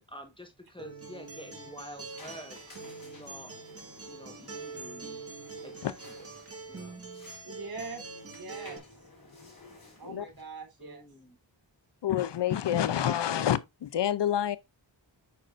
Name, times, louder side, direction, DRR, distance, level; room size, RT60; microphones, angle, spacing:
voice 1, 0.0-3.5 4.1-5.2 5.6-6.3 6.7-7.1 10.8-11.4, equal, 10° left, 1.2 m, -48 dB
Acoustic guitar, 0.8-8.8, right 4 dB, 30° right, 1.9 m, -44 dB
sound 1, 1.3-10.4, left 2 dB, 45° left, 4.8 m, -54 dB
voice 2, 7.4-8.8 9.9-11.0, right 4 dB, 50° right, 3.8 m, -42 dB
voice 3, 12.0-14.6, left 10 dB, 65° left, 0.6 m, -28 dB
8.7 x 6.3 x 2.5 m
wide cardioid pair, 105°, 45 cm